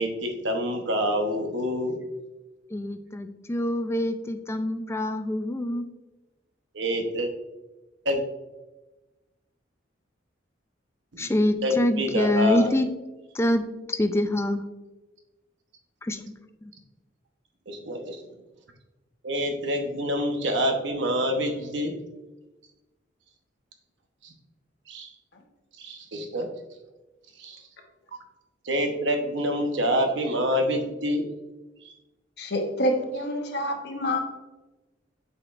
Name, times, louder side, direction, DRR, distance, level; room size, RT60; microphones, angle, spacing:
voice 1, 0.0-2.0 6.7-7.3 8.0-8.2 11.1-11.3 11.6-12.7 17.7-18.2 19.2-21.9 24.2-24.3 24.9-25.1 25.8-26.5 27.4-27.6 28.6-31.2 31.8-31.9, equal, 70° right, 4 dB, 1.0 m, -27 dB
voice 2, 2.7-5.9 11.2-12.9 13.3-13.6 13.9-14.6 16.0-16.2 16.6-16.7, left 1 dB, 15° left, 8 dB, 0.4 m, -25 dB
voice 3, 32.4-34.2, equal, 60° left, 3 dB, 1.0 m, -27 dB
8.1 x 5.0 x 2.5 m, 1.1 s
head